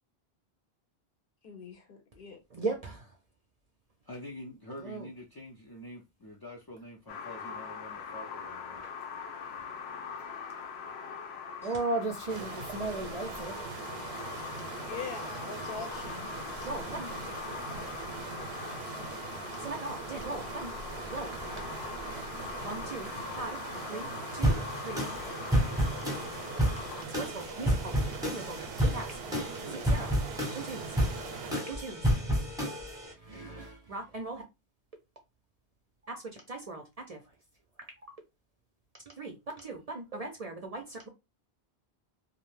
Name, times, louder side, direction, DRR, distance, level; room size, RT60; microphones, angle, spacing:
voice 1, 1.4-2.4 14.8-17.3 18.2-18.5, left 5 dB, 65° left, 0.8 m, -44 dB
voice 2, 2.5-3.1 4.8-5.1 11.6-13.6 16.6-17.1 19.6-20.7 21.1-32.2 32.5-34.4 36.1-37.2 39.2-41.1, right 3 dB, 50° right, 0.5 m, -39 dB
voice 3, 4.1-8.9, left 1 dB, 40° left, 0.3 m, -46 dB
sound 1, 7.1-27.0, left 6 dB, 90° left, 0.8 m, -42 dB
sound 2, 12.3-31.5, right 5 dB, 85° right, 0.8 m, -41 dB
sound 3, 24.4-33.1, equal, 5° right, 0.6 m, -30 dB
2.5 x 2.1 x 3.1 m
omnidirectional pair, 1.1 m